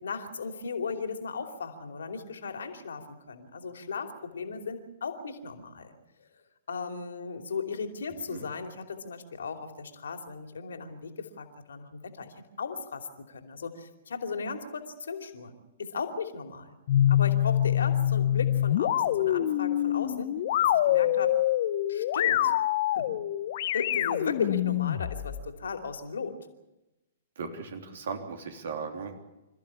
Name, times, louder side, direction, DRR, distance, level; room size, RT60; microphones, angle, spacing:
voice 1, 0.0-6.3 6.7-15.5 15.8-16.7 17.1-20.3 20.6-21.3 21.9-22.5 22.9-23.1 23.7-26.4, left 5 dB, 70° left, 5 dB, 2.9 m, -36 dB
sound 1, 16.9-25.5, left 12 dB, 50° left, 1.0 m, -25 dB
voice 2, 27.4-29.2, right 5 dB, 60° right, 4 dB, 3.2 m, -37 dB
27.5 x 14.5 x 8.7 m, 1.0 s
figure-of-eight pair, 110°, 0 cm